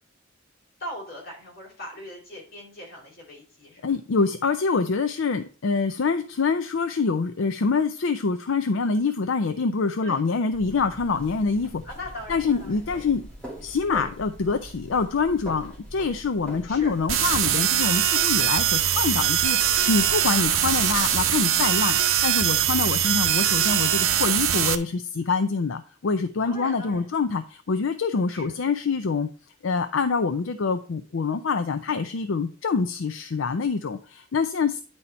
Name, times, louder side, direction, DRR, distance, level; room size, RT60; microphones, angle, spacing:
voice 1, 0.8-3.8 10.0-10.2 11.8-12.8 16.7-17.0 26.4-27.1 28.3-28.6, left 1 dB, 50° left, -3 dB, 4.0 m, -40 dB
voice 2, 3.8-11.8 12.3-13.3 13.6-29.3 29.6-34.8, left 4 dB, 70° left, 9 dB, 0.5 m, -25 dB
sound 1, 10.5-24.6, right 1 dB, 5° left, 2.6 m, -43 dB
sound 2, 17.1-24.7, right 10 dB, 85° right, 0.8 m, -22 dB
9.6 x 4.2 x 4.3 m, 0.39 s
head